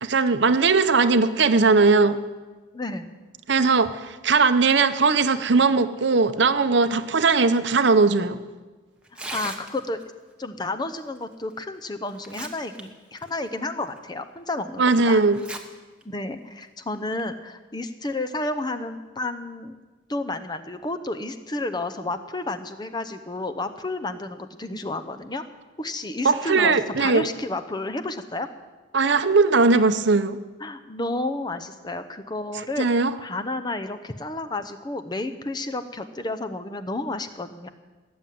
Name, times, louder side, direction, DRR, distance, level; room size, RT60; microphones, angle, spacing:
voice 1, 0.0-2.2 3.5-8.4 14.8-15.4 26.2-27.3 28.9-30.4 32.8-33.1, right 4 dB, 60° right, 11 dB, 0.8 m, -19 dB
voice 2, 2.7-3.1 9.1-10.0 10.4-15.2 16.0-19.8 20.1-25.4 25.8-28.5 30.6-32.9 33.2-37.7, left 2 dB, 20° left, 8 dB, 0.7 m, -31 dB
Tearing, 9.0-10.0 11.5-11.6 12.1-12.8 13.2-13.3 14.0-14.1 15.3-15.6 16.0-16.1 16.9-17.2, right 2 dB, 5° right, 1.0 m, -36 dB
18.0 x 7.6 x 9.4 m, 1.3 s
head